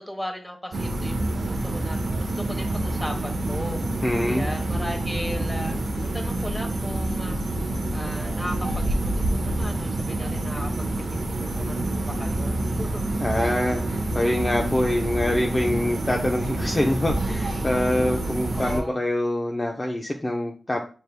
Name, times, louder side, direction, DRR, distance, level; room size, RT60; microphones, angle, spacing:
voice 1, 0.0-3.8 4.2-7.4 7.9-13.0 18.5-19.0, equal, 5° left, 2 dB, 1.2 m, -37 dB
sound 1, 0.7-18.8, right 1 dB, 80° right, 0.7 m, -27 dB
voice 2, 4.0-4.5 13.2-20.8, left 1 dB, 30° left, 0 dB, 0.6 m, -25 dB
5.4 x 3.3 x 2.2 m, 0.38 s
cardioid pair, 45°, 0 cm